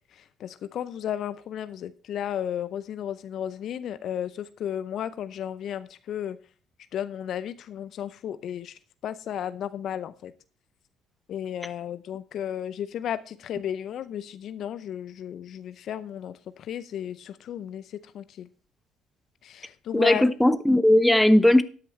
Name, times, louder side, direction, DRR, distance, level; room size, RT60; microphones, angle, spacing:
voice 1, 0.1-6.4 6.9-10.3 11.3-18.5 19.4-20.2, left 10 dB, 60° left, 0.5 m, -34 dB
voice 2, 19.9-21.6, left 1 dB, 5° left, 1.0 m, -18 dB
13.0 x 9.5 x 3.1 m
hypercardioid pair, 55°, 0 cm